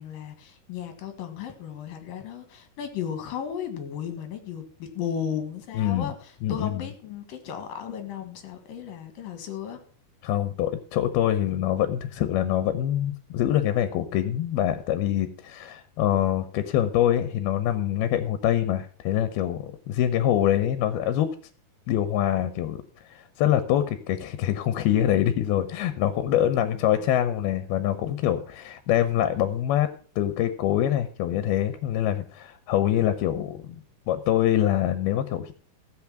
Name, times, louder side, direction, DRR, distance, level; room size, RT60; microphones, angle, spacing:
voice 1, 0.0-9.8 26.6-27.0, left 8 dB, 70° left, 7 dB, 3.5 m, -35 dB
voice 2, 5.7-6.1 6.4-6.9 10.2-21.4 21.9-22.8 23.1-29.9 30.2-33.8 34.1-35.5, left 11 dB, 85° left, 11 dB, 2.9 m, -25 dB
15.5 x 8.1 x 5.9 m, 0.42 s
omnidirectional pair, 4.3 m